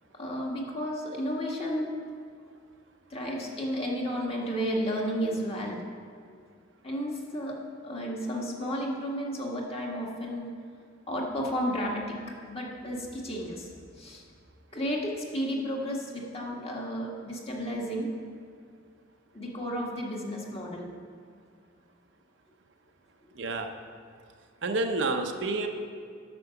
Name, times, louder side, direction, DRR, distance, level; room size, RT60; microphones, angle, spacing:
voice 1, 0.1-1.9 3.1-5.8 6.8-7.6 7.8-10.5 11.1-12.2 12.5-13.7 14.0-14.2 14.7-18.1 19.3-20.9, equal, 30° left, -2 dB, 1.7 m, -32 dB
voice 2, 23.4-23.7 24.6-25.7, right 3 dB, 65° right, 5 dB, 0.8 m, -29 dB
10.5 x 6.1 x 7.0 m, 2.1 s
head